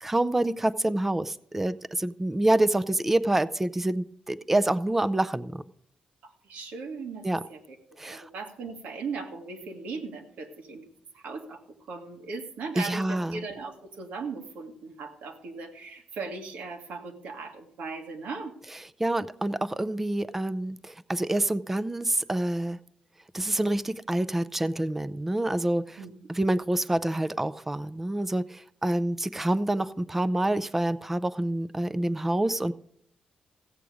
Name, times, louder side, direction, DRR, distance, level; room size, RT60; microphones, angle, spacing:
voice 1, 0.0-5.6 7.2-7.4 8.0-8.3 12.8-13.4 19.0-22.8 23.3-26.0 26.3-32.7, right 1 dB, 10° right, 14 dB, 0.4 m, -27 dB
voice 2, 6.2-7.2 7.5-7.8 8.1-10.8 11.1-11.6 11.9-18.5 26.0-26.1, right 4 dB, 90° right, 3 dB, 1.9 m, -38 dB
15.5 x 8.2 x 5.0 m, 0.68 s
wide cardioid pair, 150°, 2 cm